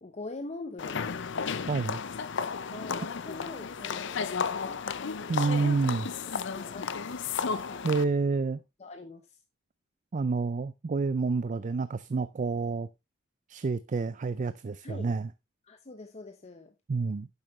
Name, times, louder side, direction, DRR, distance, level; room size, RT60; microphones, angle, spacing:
voice 1, 0.0-1.2 2.5-4.9 5.4-5.8 6.5-6.9 7.7-7.8 8.8-9.4 14.8-15.1 15.6-16.7, left 3 dB, 35° left, 0.8 m, -43 dB
sound 1, 0.8-8.0, left 5 dB, 65° left, 0.6 m, -33 dB
voice 2, 1.7-2.0 5.3-6.1 7.8-8.6 10.1-12.9 13.5-15.3 16.9-17.3, right 4 dB, 40° right, 0.4 m, -28 dB
9.8 x 7.4 x 3.1 m
head